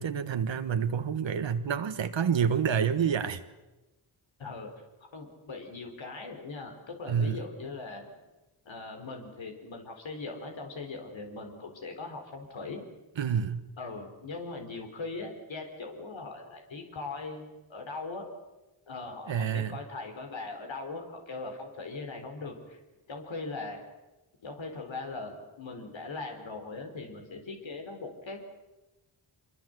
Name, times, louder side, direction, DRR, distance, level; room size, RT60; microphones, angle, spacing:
voice 1, 0.0-3.4 7.1-7.4 13.2-13.7 19.3-19.8, right 7 dB, 75° right, 10 dB, 1.6 m, -28 dB
voice 2, 5.1-8.1 8.6-12.8 13.8-18.3 18.9-22.8 23.1-23.8 24.4-28.5, left 3 dB, 80° left, 3 dB, 4.3 m, -40 dB
24.5 x 22.0 x 8.0 m, 1.1 s
cardioid pair, 70°, 46 cm